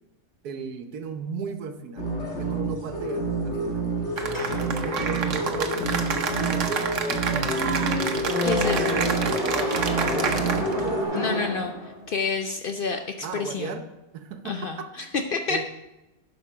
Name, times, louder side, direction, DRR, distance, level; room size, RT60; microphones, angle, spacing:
voice 1, 0.4-3.8 4.5-7.5 9.8-11.2 13.2-13.8 14.1-15.1 15.5-15.6, right 5 dB, 80° right, 8 dB, 1.4 m, -36 dB
sound 1, 2.0-11.0, right 2 dB, 50° left, 1.9 m, -29 dB
sound 2, 4.1-12.2, left 1 dB, 15° right, 1.9 m, -31 dB
Cheering / Applause, 4.2-10.9, right 6 dB, 55° right, 1.1 m, -29 dB
voice 2, 8.4-9.0 11.2-13.8 14.4-15.6, left 5 dB, 85° left, 6 dB, 0.4 m, -29 dB
11.0 x 5.2 x 6.0 m, 0.99 s
omnidirectional pair, 1.6 m